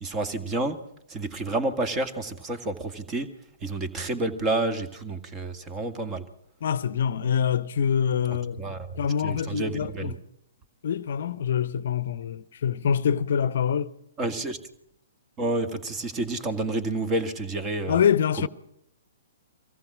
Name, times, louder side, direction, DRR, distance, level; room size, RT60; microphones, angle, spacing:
voice 1, 0.0-0.8 1.1-3.3 3.6-6.2 8.6-10.2 14.2-14.6 15.4-18.0 18.4-18.5, right 2 dB, 20° right, 1.9 m, -29 dB
voice 2, 6.6-8.6 9.0-10.1 10.8-13.9 17.9-18.5, left 8 dB, 55° left, 0.8 m, -25 dB
24.0 x 18.0 x 6.3 m
figure-of-eight pair, 120°, 0 cm